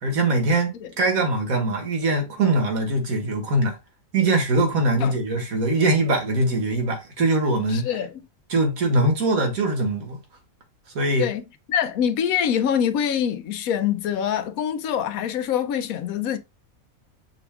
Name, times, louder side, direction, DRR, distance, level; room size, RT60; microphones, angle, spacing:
voice 1, 0.0-3.8 4.1-7.9 8.5-10.2 10.9-11.3, right 2 dB, 80° right, 1.8 m, -22 dB
voice 2, 7.7-8.1 11.2-11.4 11.7-16.4, left 9 dB, 85° left, 1.1 m, -24 dB
6.0 x 2.3 x 3.5 m
omnidirectional pair, 1.5 m